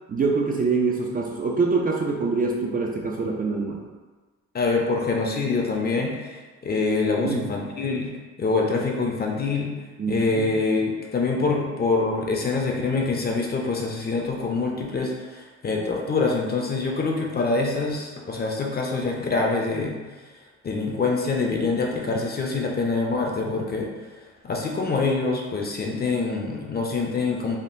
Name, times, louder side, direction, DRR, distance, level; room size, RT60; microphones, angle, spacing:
voice 1, 0.1-3.8 6.8-6.9 7.2-7.4 10.0-10.5, right 4 dB, 30° right, 0 dB, 0.4 m, -25 dB
voice 2, 4.5-8.1 8.4-9.7 10.1-20.0 20.6-23.9 24.4-27.6, left 3 dB, 35° left, 0 dB, 0.5 m, -25 dB
3.6 x 2.1 x 2.5 m, 1.3 s
cardioid pair, 90°, 30 cm